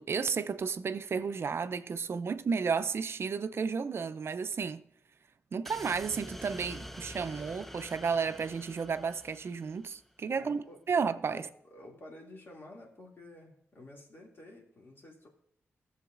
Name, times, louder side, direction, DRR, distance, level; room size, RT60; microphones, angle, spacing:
voice 1, 0.0-4.8 5.5-11.5, right 5 dB, 55° right, 0.5 m, -32 dB
sound 1, 5.6-10.0, equal, 5° left, 0.5 m, -47 dB
voice 2, 10.3-10.9 11.3-15.3, left 1 dB, 50° left, 2.4 m, -51 dB
14.0 x 7.0 x 2.5 m
cardioid pair, 65°, 5 cm